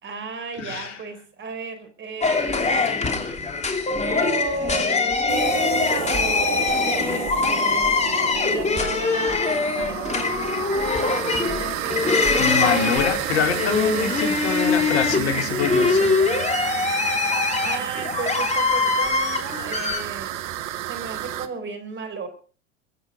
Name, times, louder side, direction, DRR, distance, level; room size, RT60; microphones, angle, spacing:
voice 1, 0.0-2.9 4.0-7.6 8.4-10.4 11.3-12.9 13.7-14.0 15.1-16.2 17.3-20.3 20.8-22.3, right 4 dB, 30° right, 9 dB, 4.0 m, -35 dB
voice 2, 0.6-1.0 12.4-16.2, left 6 dB, 65° left, 4 dB, 3.8 m, -25 dB
sound 1, 2.2-20.0, left 4 dB, 20° left, 2.9 m, -23 dB
sound 2, 5.3-21.5, right 12 dB, 60° right, 1.6 m, -31 dB
23.0 x 8.9 x 5.2 m, 0.41 s
hypercardioid pair, 90°, 38 cm